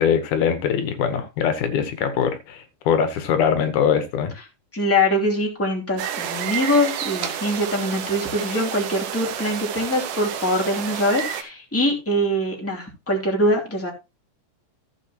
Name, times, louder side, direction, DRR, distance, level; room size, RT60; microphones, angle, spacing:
voice 1, 0.0-4.3, left 7 dB, 80° left, 2.6 m, -22 dB
voice 2, 4.7-13.9, left 1 dB, 5° left, 2.4 m, -23 dB
sound 1, 6.0-11.4, right 9 dB, 90° right, 2.7 m, -30 dB
14.5 x 7.5 x 2.9 m
omnidirectional pair, 3.5 m